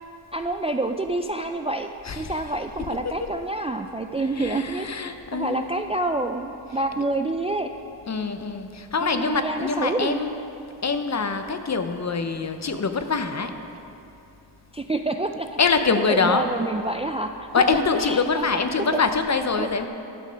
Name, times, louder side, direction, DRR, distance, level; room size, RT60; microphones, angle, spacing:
voice 1, 0.3-1.9 2.2-4.9 5.3-7.7 9.0-10.3 14.7-15.6 16.1-18.5 18.9-19.0 19.6-19.7, right 2 dB, 15° right, 5 dB, 0.3 m, -27 dB
voice 2, 2.0-2.4 3.0-3.3 4.2-5.7 6.9-7.0 8.1-10.3 10.8-13.5 15.6-16.4 17.5-19.9, left 4 dB, 40° left, 8 dB, 0.7 m, -24 dB
11.5 x 6.4 x 5.2 m, 2.7 s
cardioid pair, 55°, 44 cm